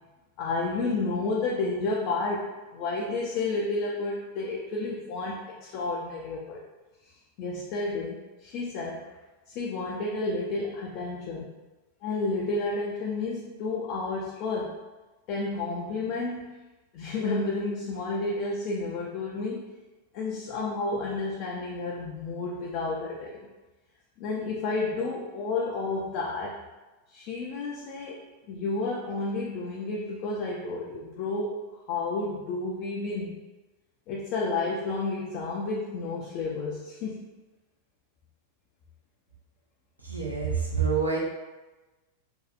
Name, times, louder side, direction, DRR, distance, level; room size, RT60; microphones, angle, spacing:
voice 1, 0.4-6.6 7.4-9.1 9.5-11.5 12.0-14.8 15.3-16.6 16.9-19.7 20.1-23.5 24.2-26.6 27.1-28.2 28.5-31.6 31.9-33.4 34.1-37.3, left 3 dB, 45° left, -4 dB, 0.3 m, -31 dB
voice 2, 40.1-41.2, right 5 dB, 85° right, -4 dB, 0.6 m, -27 dB
2.6 x 2.3 x 2.2 m, 1.1 s
figure-of-eight pair, 90°, 0 cm